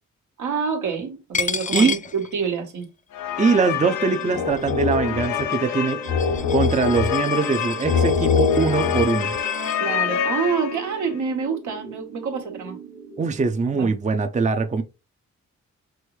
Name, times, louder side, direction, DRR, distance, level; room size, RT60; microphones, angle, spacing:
voice 1, 0.4-2.9 9.8-12.8 13.7-13.9, right 6 dB, 75° right, 1.4 m, -27 dB
Coin (dropping), 1.3-2.8 3.2-9.8, left 6 dB, 25° left, 0.5 m, -33 dB
sound 1, 3.1-11.0, left 7 dB, 85° left, 0.8 m, -24 dB
voice 2, 3.4-6.0 6.5-9.3 13.2-14.8, right 4 dB, 25° right, 0.6 m, -22 dB
sound 2, 3.5-13.5, right 5 dB, 40° right, 1.4 m, -41 dB
6.2 x 2.6 x 3.2 m
cardioid pair, 90°, 30 cm